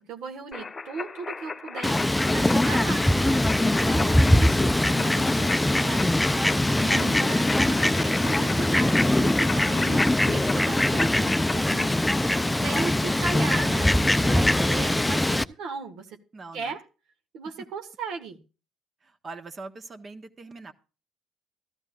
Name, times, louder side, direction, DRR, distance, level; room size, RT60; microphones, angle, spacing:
voice 1, 0.0-16.2 16.5-16.8 17.3-18.4, right 5 dB, 70° right, 5 dB, 1.6 m, -37 dB
sound 1, 0.5-11.6, left 4 dB, 30° left, 1.1 m, -37 dB
Fowl, 1.8-15.4, left 1 dB, 10° left, 0.5 m, -22 dB
voice 2, 4.0-4.4 16.3-16.8 17.6-17.7 19.0-20.7, right 3 dB, 35° right, 8 dB, 1.5 m, -43 dB
14.5 x 12.5 x 2.5 m, 0.34 s
supercardioid pair, 75°, 0 cm